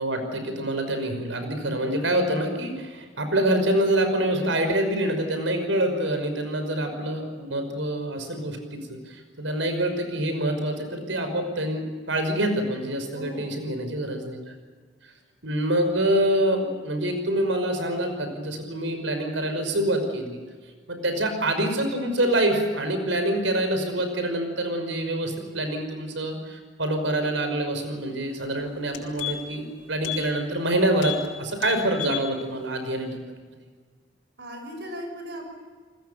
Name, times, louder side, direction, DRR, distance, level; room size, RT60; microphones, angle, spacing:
voice 1, 0.0-14.4 15.4-20.4 20.9-33.2, right 1 dB, 85° right, 7 dB, 5.6 m, -26 dB
voice 2, 13.1-13.7 34.4-35.5, equal, 65° right, 3 dB, 6.1 m, -37 dB
sound 1, 28.3-28.4 28.8-29.6 30.0-30.2 30.5-30.7 31.0-31.3 31.5-32.3 32.7-32.8, left 13 dB, 90° left, 4.8 m, -33 dB
29.5 x 20.5 x 7.0 m, 1.5 s
head